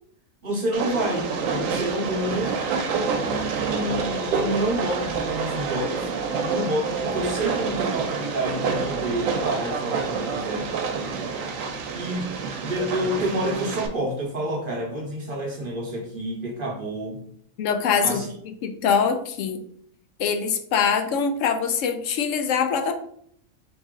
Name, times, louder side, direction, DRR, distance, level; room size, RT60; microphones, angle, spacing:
voice 1, 0.4-2.6 3.2-6.1 6.4-10.7 11.9-12.4 12.6-17.2 18.0-18.3, right 1 dB, 50° right, 0 dB, 0.8 m, -28 dB
Train, 0.7-13.9, right 5 dB, 85° right, 1.0 m, -28 dB
voice 2, 17.6-18.2 18.6-19.6 20.2-22.9, left 6 dB, 75° left, 7 dB, 0.9 m, -23 dB
4.0 x 3.0 x 3.6 m, 0.65 s
omnidirectional pair, 1.4 m